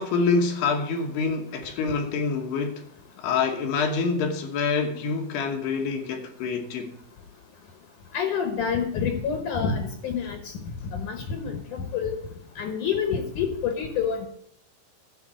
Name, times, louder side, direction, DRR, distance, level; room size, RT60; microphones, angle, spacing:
voice 1, 0.0-2.9 3.2-7.0, left 4 dB, 70° left, 2.9 m, -26 dB
voice 2, 8.1-10.4 10.9-12.2 12.6-14.3, left 6 dB, 85° left, 1.7 m, -27 dB
13.0 x 4.7 x 8.8 m
omnidirectional pair, 5.4 m